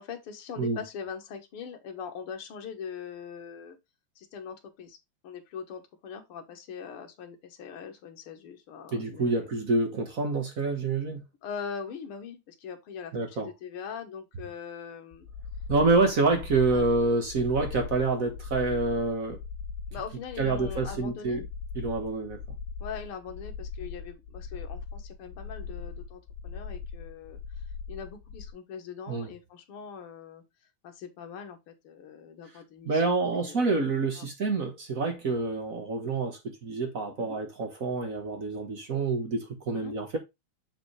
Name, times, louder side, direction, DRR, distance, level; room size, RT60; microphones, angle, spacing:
voice 1, 0.0-3.8 4.2-5.0 5.2-9.5 11.4-15.3 16.7-16.9 19.9-21.4 22.8-27.4 27.9-30.4 30.8-33.7 34.2-34.3 37.2-37.4 39.7-39.9, left 6 dB, 55° left, 1.8 m, -41 dB
voice 2, 8.9-11.2 13.1-13.5 15.7-19.4 20.4-21.4 21.7-22.4 29.1-29.3 32.8-40.2, right 3 dB, 50° right, 1.0 m, -27 dB
sound 1, 15.1-28.5, left 5 dB, 80° left, 2.0 m, -40 dB
7.3 x 4.9 x 3.2 m
omnidirectional pair, 3.3 m